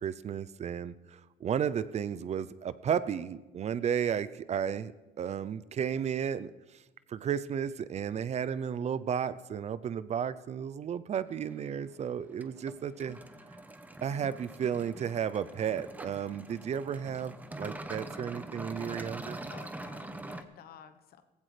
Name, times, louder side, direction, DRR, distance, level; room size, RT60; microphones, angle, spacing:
voice 1, 0.0-4.9 5.2-6.5 7.1-13.2 14.0-19.4, right 8 dB, 40° right, 16 dB, 0.5 m, -33 dB
sound 1, 11.3-20.4, right 2 dB, 10° right, 0.9 m, -44 dB
voice 2, 19.5-21.2, left 8 dB, 65° left, 10 dB, 1.1 m, -52 dB
17.0 x 15.5 x 3.3 m, 1.1 s
cardioid pair, 110°, 17 cm